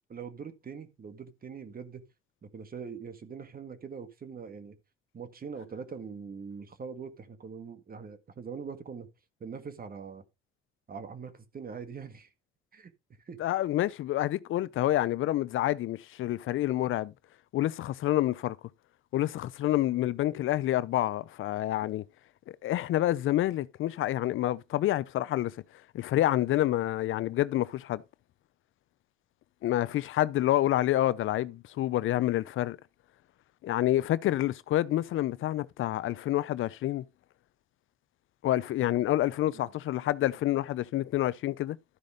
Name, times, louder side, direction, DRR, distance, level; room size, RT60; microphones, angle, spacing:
voice 1, 0.1-2.1 2.4-4.8 5.1-9.1 9.4-10.2 10.9-12.3 12.7-12.9 13.3-13.4 38.8-39.1 39.5-39.7, right 6 dB, 45° right, 1.9 m, -42 dB
voice 2, 13.4-17.1 17.5-18.6 19.1-22.0 22.6-25.5 25.9-28.0 29.6-32.8 33.6-37.0 38.4-41.8, left 14 dB, 70° left, 0.6 m, -28 dB
12.5 x 5.1 x 5.1 m
supercardioid pair, 75°, 21 cm